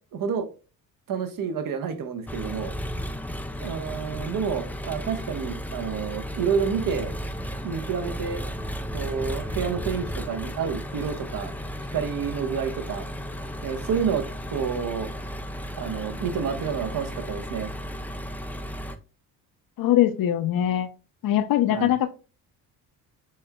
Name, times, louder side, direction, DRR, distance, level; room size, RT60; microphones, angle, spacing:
voice 1, 0.1-0.5 1.1-2.8 3.6-7.1 7.6-8.4 8.9-11.6 11.9-13.1 13.6-14.2 14.5-15.1 15.8-17.7 21.7-21.9, right 6 dB, 55° right, 8 dB, 1.0 m, -29 dB
Engine, 2.3-19.0, equal, 5° left, 0.4 m, -34 dB
voice 2, 19.8-20.9 21.2-22.1, left 12 dB, 55° left, 11 dB, 0.8 m, -22 dB
6.4 x 3.6 x 2.2 m, 0.33 s
supercardioid pair, 65°, 41 cm